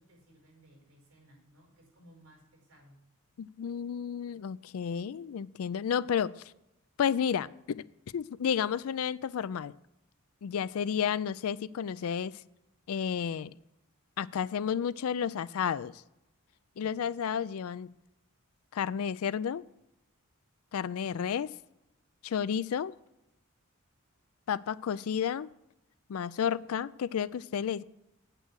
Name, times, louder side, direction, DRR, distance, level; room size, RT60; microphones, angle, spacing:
voice 1, 0.0-3.0 5.8-6.0 16.8-17.2 20.7-21.1, equal, 65° right, 0 dB, 5.0 m, -60 dB
voice 2, 3.4-6.3 7.0-7.8 8.1-9.7 10.4-12.3 12.9-13.5 14.2-16.0 16.8-17.9 18.7-19.6 20.7-21.5 22.2-22.9 24.5-25.5 26.1-27.8, left 8 dB, 75° left, 19 dB, 0.4 m, -31 dB
9.0 x 8.1 x 6.3 m, 0.89 s
head